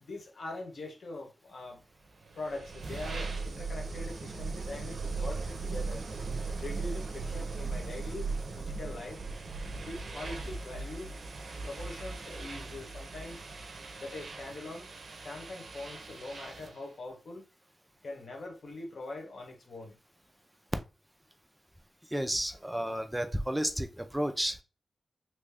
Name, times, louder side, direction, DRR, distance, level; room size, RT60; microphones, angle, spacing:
voice 1, 0.0-1.8 2.3-6.1 6.6-9.2 9.8-11.1 11.6-13.4 14.0-14.9 15.2-17.4 18.0-20.0, left 2 dB, 70° left, 1.3 m, -43 dB
sound 1, 2.2-16.8, right 4 dB, 70° right, 0.6 m, -38 dB
voice 2, 22.1-24.6, equal, 5° right, 0.6 m, -32 dB
3.1 x 2.5 x 3.5 m
cardioid pair, 55°, 0 cm